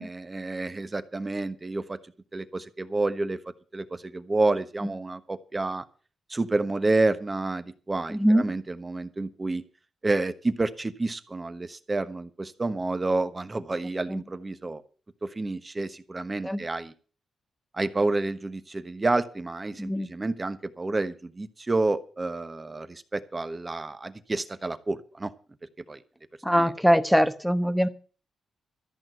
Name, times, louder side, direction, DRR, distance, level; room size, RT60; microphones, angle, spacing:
voice 1, 0.0-2.0 2.3-3.4 3.7-5.8 6.3-9.6 10.0-14.8 15.2-16.9 17.7-25.3 25.9-26.0 26.5-26.7, right 2 dB, 25° right, 10 dB, 1.1 m, -29 dB
voice 2, 8.1-8.5 14.1-14.2 16.4-16.6 19.8-20.1 26.4-27.9, equal, ahead, 11 dB, 1.0 m, -22 dB
14.0 x 6.0 x 9.1 m, 0.39 s
cardioid pair, 110°, 0 cm